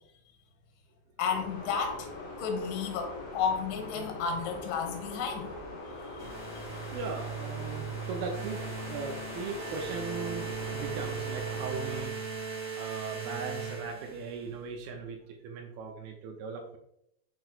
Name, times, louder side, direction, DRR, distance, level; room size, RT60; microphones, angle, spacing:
voice 1, 1.2-2.1 2.4-5.5 6.2-6.3, left 6 dB, 85° left, 4 dB, 3.0 m, -32 dB
sound 1, 1.2-12.1, left 2 dB, 55° left, 2.1 m, -42 dB
sound 2, 6.2-14.5, right 6 dB, 35° right, 1.3 m, -38 dB
voice 2, 6.4-16.8, right 4 dB, 85° right, 2 dB, 2.1 m, -39 dB
6.5 x 6.0 x 2.4 m, 0.75 s
omnidirectional pair, 5.0 m